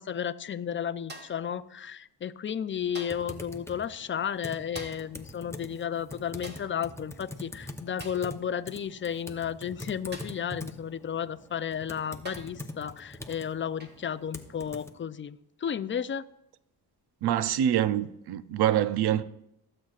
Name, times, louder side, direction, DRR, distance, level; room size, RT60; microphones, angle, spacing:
voice 1, 0.0-16.3, left 8 dB, 30° left, 0.4 m, -33 dB
sound 1, 1.1-1.5 2.9-3.3 4.7-5.2 6.4-6.8 8.0-8.3 10.1-10.5 11.5-11.6 12.2-12.6 13.8-14.1 15.7-15.9, right 1 dB, 25° right, 1.6 m, -45 dB
Typing, 3.1-14.9, left 1 dB, 5° left, 0.8 m, -44 dB
voice 2, 17.2-19.2, right 11 dB, 70° right, 0.6 m, -25 dB
22.0 x 7.7 x 2.5 m
cardioid pair, 95°, 40 cm